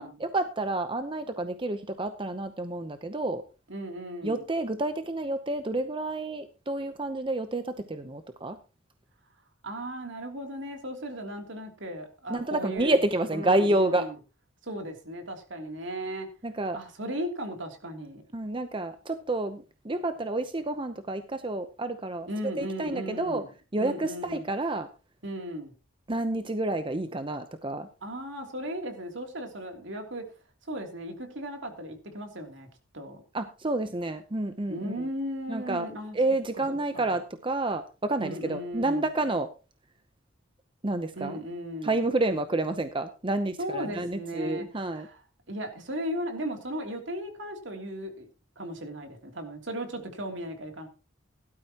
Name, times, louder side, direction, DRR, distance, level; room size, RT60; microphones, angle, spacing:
voice 1, 0.0-3.4 4.2-8.6 12.3-14.1 16.4-16.8 18.3-22.3 22.6-23.4 23.7-24.9 26.1-27.9 33.3-34.9 35.5-35.9 36.1-39.5 40.8-41.4 41.8-45.1, right 2 dB, 25° right, 9 dB, 0.7 m, -29 dB
voice 2, 3.7-4.4 9.6-13.0 13.3-14.2 14.6-16.3 16.7-18.2 22.3-23.5 23.8-24.4 25.2-25.7 28.0-30.2 30.7-32.7 32.9-33.2 34.7-36.2 36.5-36.6 36.9-37.2 38.2-39.1 41.1-42.0 43.6-45.2 45.5-48.3 48.6-50.9, equal, 65° right, 4 dB, 3.0 m, -36 dB
17.0 x 12.5 x 2.9 m, 0.31 s
head